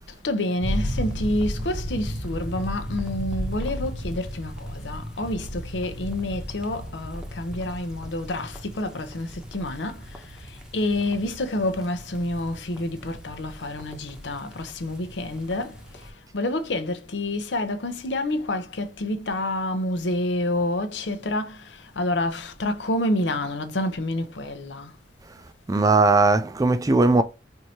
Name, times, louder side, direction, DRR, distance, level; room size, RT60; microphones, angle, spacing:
voice 1, 0.2-24.9, left 1 dB, 85° left, 0.7 m, -28 dB
sound 1, 0.6-16.1, equal, 5° right, 0.8 m, -35 dB
voice 2, 25.7-27.2, right 3 dB, 20° right, 0.4 m, -18 dB
4.6 x 2.7 x 2.7 m
head